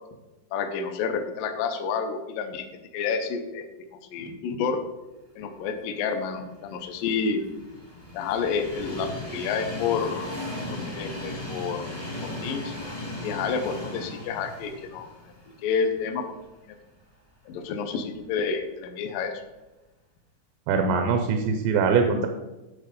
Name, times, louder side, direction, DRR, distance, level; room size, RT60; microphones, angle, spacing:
voice 1, 0.5-2.7 2.9-3.6 4.1-4.8 5.4-7.4 8.1-10.3 10.7-11.9 12.2-12.7 13.2-15.1 15.6-16.4 16.7-16.8 17.5-19.3, left 5 dB, 80° left, 6 dB, 2.0 m, -29 dB
Train, 6.4-16.5 17.0-17.1 18.2-18.3, left 1 dB, 25° left, 0.7 m, -37 dB
voice 2, 20.7-22.3, right 5 dB, 85° right, 5 dB, 2.9 m, -22 dB
10.5 x 4.2 x 5.1 m, 1.1 s
omnidirectional pair, 4.9 m